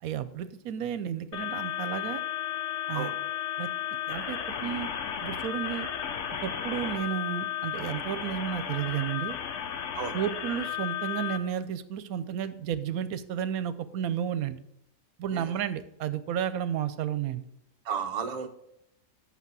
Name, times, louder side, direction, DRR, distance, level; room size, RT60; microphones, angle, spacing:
voice 1, 0.0-2.2 2.9-3.1 3.6-3.7 4.1-4.9 5.2-5.9 6.4-9.4 10.1-14.6 15.2-17.4, right 9 dB, 80° right, 14 dB, 1.1 m, -32 dB
sound 1, 1.3-11.4, left 9 dB, 60° left, 1.0 m, -34 dB
voice 2, 17.8-18.5, right 6 dB, 40° right, 6 dB, 0.7 m, -33 dB
8.3 x 5.8 x 6.1 m, 0.77 s
omnidirectional pair, 1.5 m